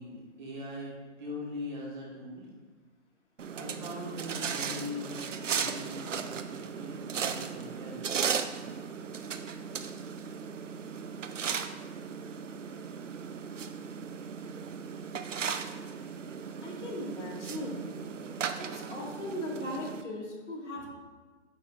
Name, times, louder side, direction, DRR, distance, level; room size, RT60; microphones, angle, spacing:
voice 1, 0.0-2.5 3.5-8.2 20.7-20.9, left 1 dB, 40° right, -4 dB, 1.6 m, -41 dB
sound 1, 3.4-20.0, right 6 dB, 90° right, 0.6 m, -36 dB
voice 2, 16.6-17.9 18.6-20.9, left 1 dB, 70° left, -1 dB, 2.0 m, -38 dB
8.5 x 5.2 x 2.5 m, 1.4 s
hypercardioid pair, 150°, 36 cm